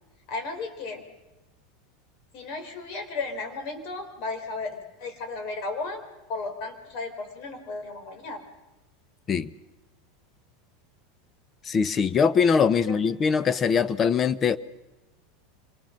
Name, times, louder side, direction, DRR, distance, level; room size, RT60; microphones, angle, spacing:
voice 1, 0.3-1.0 2.3-6.0 6.3-8.4 12.8-13.0, left 3 dB, 55° left, 4.0 m, -34 dB
voice 2, 11.7-14.6, left 6 dB, 30° left, 0.8 m, -22 dB
26.0 x 19.5 x 6.4 m
supercardioid pair, 110°, 0 cm